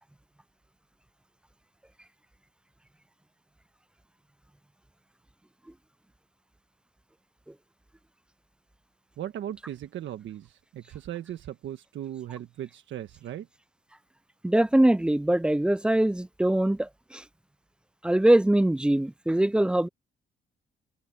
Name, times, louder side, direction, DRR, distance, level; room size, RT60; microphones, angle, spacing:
voice 1, 9.2-13.5, right 11 dB, 70° right, 1.4 m, -38 dB
voice 2, 14.4-17.2 18.0-19.9, right 1 dB, 5° right, 0.3 m, -22 dB
cardioid pair, 90°, 20 cm